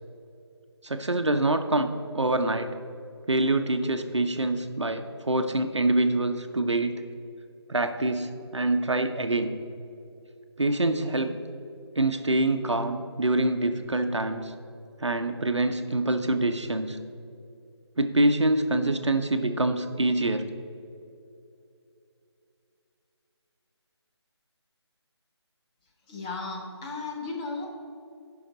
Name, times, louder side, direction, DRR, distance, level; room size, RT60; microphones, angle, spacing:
voice 1, 0.8-2.7 3.3-7.0 7.7-9.6 10.6-11.4 12.0-14.5 15.0-17.0 18.0-20.5, right 2 dB, 85° right, 7 dB, 0.9 m, -25 dB
voice 2, 26.1-27.7, left 3 dB, 15° left, -2 dB, 1.1 m, -35 dB
15.0 x 5.9 x 4.0 m, 2.7 s
figure-of-eight pair, 155°, 15 cm